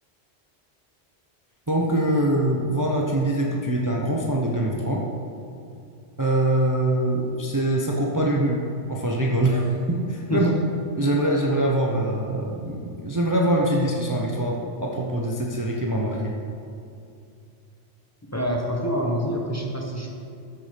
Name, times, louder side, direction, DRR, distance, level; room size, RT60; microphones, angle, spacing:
voice 1, 1.7-5.0 6.2-8.6 8.9-10.5 11.0-16.3, right 1 dB, 20° right, -1 dB, 0.9 m, -23 dB
voice 2, 18.3-20.1, equal, 15° left, -1 dB, 1.2 m, -26 dB
13.5 x 7.0 x 5.2 m, 2.5 s
omnidirectional pair, 1.1 m